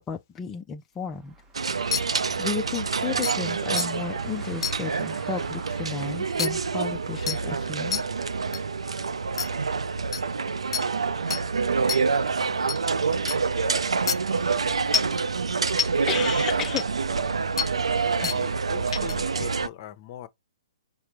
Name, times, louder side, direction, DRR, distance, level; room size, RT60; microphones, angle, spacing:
voice 1, 0.0-1.3 1.7-8.0 16.1-16.8, left 7 dB, 15° left, 0.4 m, -33 dB
Car, 1.0-9.6, right 4 dB, 15° right, 0.8 m, -51 dB
sound 1, 1.5-19.7, right 5 dB, 90° right, 0.4 m, -27 dB
sound 2, 1.9-2.0 2.7-2.8 3.2-3.3 3.8-3.9 4.6-4.7 6.4-6.5 7.3-7.4 7.9-8.0 8.5-8.6 9.4-9.5 10.1-10.2 10.7-10.8 11.3-11.4 11.9-12.0 12.7-12.8 13.3-13.4 14.1-14.2 14.9-15.1 15.8-15.9 16.8-16.9 17.6-17.7 18.2-18.4 18.9-19.1, left 6 dB, 75° left, 0.5 m, -26 dB
voice 2, 18.2-20.3, left 9 dB, 40° left, 0.8 m, -40 dB
4.9 x 2.1 x 4.5 m
hypercardioid pair, 140°, 3 cm